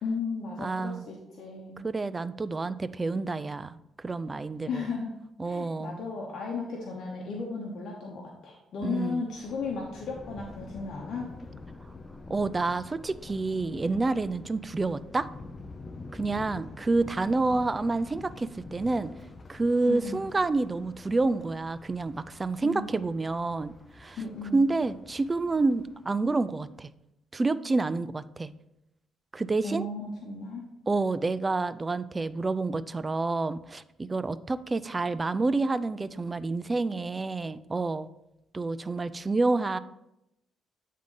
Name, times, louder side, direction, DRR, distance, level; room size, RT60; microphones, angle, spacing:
voice 1, 0.0-1.9 4.7-5.1 5.4-11.3 16.2-16.6 19.9-20.2 22.6-22.9 24.2-24.6 29.6-30.7, left 4 dB, 65° left, -1 dB, 1.0 m, -35 dB
voice 2, 0.6-1.1 1.8-4.8 5.4-6.0 8.8-9.2 12.3-15.3 16.1-19.1 19.5-24.2 24.5-26.9 27.3-28.5 29.3-29.9 30.9-38.1 38.5-39.8, right 3 dB, 25° right, 15 dB, 0.3 m, -28 dB
Thunder, 9.2-26.6, left 3 dB, 30° left, 0.6 m, -47 dB
8.6 x 3.7 x 3.8 m, 0.86 s
cardioid pair, 90°, 0 cm